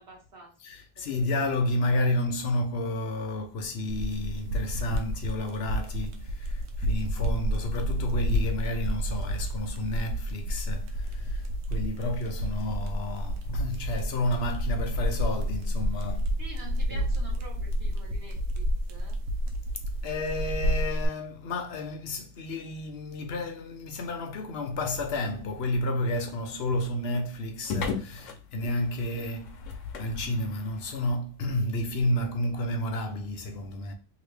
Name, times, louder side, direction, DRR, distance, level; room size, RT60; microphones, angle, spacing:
voice 1, 0.0-0.5 1.0-1.3 1.7-1.8 16.4-19.2, right 2 dB, 55° right, 1.3 m, -47 dB
voice 2, 0.6-16.3 16.9-17.1 20.0-33.9, left 1 dB, 60° left, 0.9 m, -31 dB
sound 1, 3.9-21.1, equal, 85° right, 1.0 m, -30 dB
sound 2, 24.7-31.0, left 5 dB, 85° left, 1.0 m, -39 dB
2.8 x 2.8 x 3.2 m
omnidirectional pair, 1.3 m